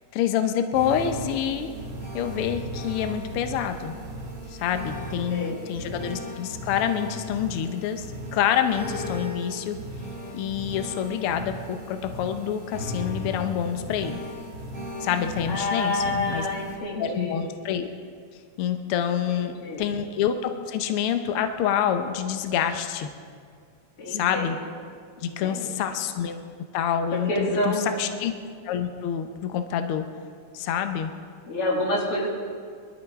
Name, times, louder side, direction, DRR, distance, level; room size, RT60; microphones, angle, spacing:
voice 1, 0.1-1.7 2.1-4.0 4.5-9.8 10.3-14.2 15.0-16.5 17.0-17.9 18.6-23.1 24.1-24.6 25.2-26.4 26.7-28.3 28.6-30.0 30.5-31.1, left 9 dB, 85° left, 7 dB, 1.2 m, -27 dB
sound 1, 0.7-16.7, equal, 25° right, 3.4 m, -36 dB
voice 2, 4.9-5.7 15.5-17.4 19.3-19.9 24.0-24.6 25.2-25.7 27.1-28.0 31.5-32.3, left 1 dB, 50° left, -3 dB, 3.2 m, -28 dB
23.0 x 12.5 x 3.5 m, 2.1 s
omnidirectional pair, 3.4 m